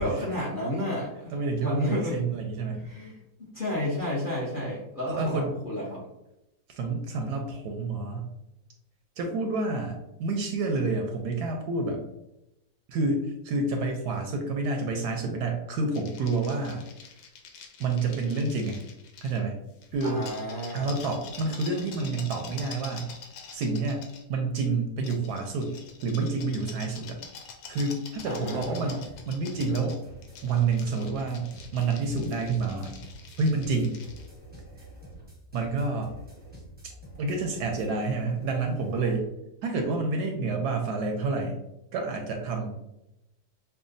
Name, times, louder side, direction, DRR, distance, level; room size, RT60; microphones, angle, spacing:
voice 1, 0.0-1.3 1.6-2.2 2.8-6.0 20.0-20.9 28.2-29.0, left 1 dB, 40° left, -7 dB, 0.7 m, -31 dB
voice 2, 1.3-2.9 5.2-5.5 6.7-8.3 9.2-12.0 12.9-16.8 17.8-18.8 19.2-19.5 19.9-20.3 20.7-23.1 23.5-24.0 24.3-25.8 26.0-27.2 27.7-30.0 30.4-33.0 33.4-34.0 35.5-36.1 37.2-39.3 39.6-41.6 41.9-43.0, right 3 dB, 70° right, 3 dB, 1.0 m, -28 dB
sound 1, 15.9-19.4 19.8-24.2 25.0-34.3, left 6 dB, 85° left, 1.4 m, -46 dB
sound 2, 28.2-39.3, right 1 dB, 10° right, 0.6 m, -48 dB
5.8 x 2.2 x 2.6 m, 0.88 s
omnidirectional pair, 2.0 m